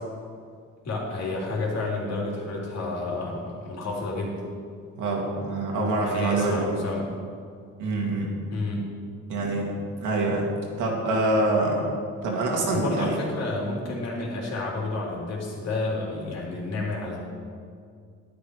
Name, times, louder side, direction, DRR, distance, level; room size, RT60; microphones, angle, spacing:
voice 1, 0.8-4.5 6.0-7.2 8.5-9.0 12.7-17.2, left 2 dB, 55° left, -3 dB, 3.5 m, -30 dB
voice 2, 5.0-6.7 7.8-8.3 9.3-9.7 10.0-10.5 10.8-11.9 12.2-13.2, right 2 dB, 85° right, -1 dB, 2.6 m, -25 dB
12.0 x 9.6 x 4.8 m, 2.2 s
cardioid pair, 90°, 30 cm